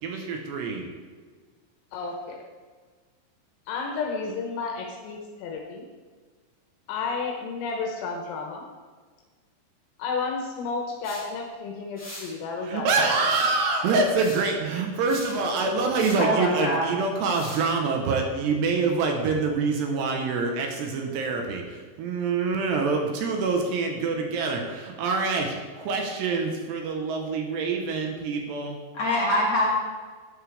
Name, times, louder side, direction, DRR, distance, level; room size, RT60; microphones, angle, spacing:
voice 1, 0.0-0.9 12.6-28.8, right 4 dB, 70° right, 2 dB, 2.7 m, -26 dB
voice 2, 1.9-2.4 3.7-5.9 6.9-8.7 10.0-13.1, left 4 dB, 85° left, 1 dB, 3.7 m, -32 dB
sound 1, 11.0-11.3 11.9-12.3 13.2-13.7 14.1-14.5 15.1-15.4 15.9-16.3 17.1-17.7, left 1 dB, 5° left, 1.4 m, -42 dB
voice 3, 16.2-16.9 28.9-29.7, left 1 dB, 55° left, -5 dB, 1.9 m, -24 dB
13.0 x 9.9 x 3.4 m, 1.5 s
omnidirectional pair, 5.9 m